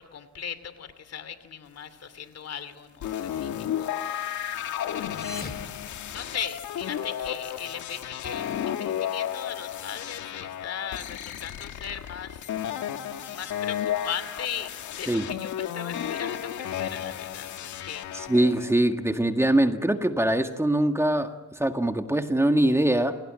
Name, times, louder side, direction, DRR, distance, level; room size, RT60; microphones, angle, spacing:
voice 1, 0.0-3.9 4.9-5.5 6.1-12.5 13.3-18.0, left 7 dB, 55° left, 13 dB, 2.6 m, -38 dB
sound 1, 3.0-18.7, left 10 dB, 75° left, 1.9 m, -33 dB
sound 2, 4.9-6.8, left 2 dB, 30° left, 3.0 m, -42 dB
voice 2, 18.1-23.2, right 1 dB, 10° right, 6 dB, 1.9 m, -23 dB
29.0 x 19.0 x 9.0 m, 1.2 s
cardioid pair, 90°, 30 cm